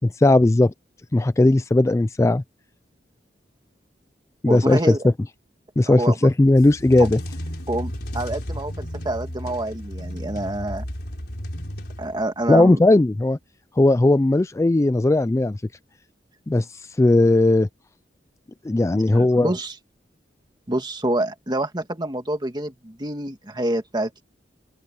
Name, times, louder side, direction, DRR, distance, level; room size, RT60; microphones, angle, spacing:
voice 1, 0.2-0.7 1.1-2.4 4.4-5.0 5.8-7.2 12.5-13.4 13.8-15.6 16.5-17.7 18.6-19.5, left 2 dB, 15° left, 0.3 m, -17 dB
voice 2, 4.5-5.1 5.9-6.2 7.0-7.1 7.7-10.9 12.0-12.8 18.9-19.7 20.7-24.2, right 1 dB, 25° right, 2.0 m, -27 dB
sound 1, 6.5-12.5, equal, 65° left, 5.3 m, -33 dB
open air
head